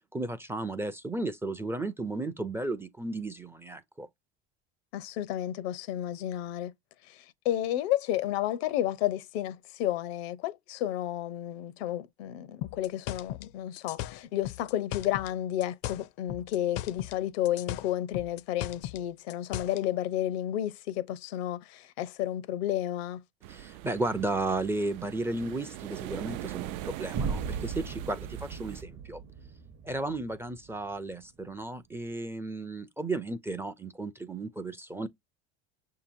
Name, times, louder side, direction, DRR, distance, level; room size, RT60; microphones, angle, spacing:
voice 1, 0.1-4.1 23.5-29.2 29.8-35.1, right 2 dB, 10° right, 0.4 m, -34 dB
voice 2, 4.9-6.7 7.1-23.2, left 12 dB, 85° left, 0.7 m, -32 dB
sound 1, 12.6-15.3 15.6-17.2 17.4-19.8, left 14 dB, 50° left, 0.4 m, -37 dB
sound 2, 23.4-28.8, right 14 dB, 70° right, 0.5 m, -42 dB
sound 3, 27.1-31.1, right 5 dB, 35° right, 0.7 m, -37 dB
6.6 x 2.8 x 2.6 m
supercardioid pair, 130°, 31 cm